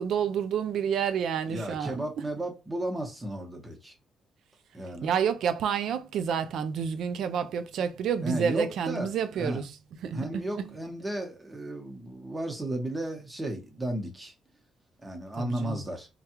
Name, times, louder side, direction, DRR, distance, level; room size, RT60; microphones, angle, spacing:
voice 1, 0.0-2.1 5.0-9.7 10.0-10.7 15.4-15.8, right 7 dB, 75° right, 0.4 m, -29 dB
voice 2, 1.5-3.9 4.7-5.1 8.2-9.6 10.1-14.3 15.0-16.1, right 1 dB, 15° right, 1.0 m, -34 dB
3.3 x 2.3 x 2.9 m
cardioid pair, 90°, 0 cm